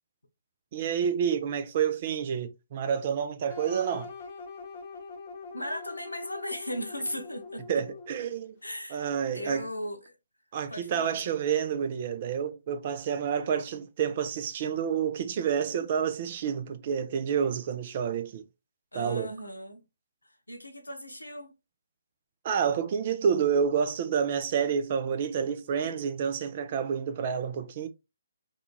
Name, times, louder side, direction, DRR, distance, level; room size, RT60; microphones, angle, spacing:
voice 1, 0.7-4.1 7.7-8.6 8.9-9.7 10.5-18.4 18.9-19.3 22.4-27.9, right 7 dB, 40° right, 0.4 m, -29 dB
sound 1, 3.5-8.4, left 4 dB, 35° left, 0.9 m, -43 dB
voice 2, 5.5-7.7 8.6-9.1 9.3-10.1 10.7-11.4 18.9-19.8 20.5-21.5, left 1 dB, 85° left, 0.6 m, -37 dB
2.4 x 2.4 x 2.9 m
figure-of-eight pair, 135°, 0 cm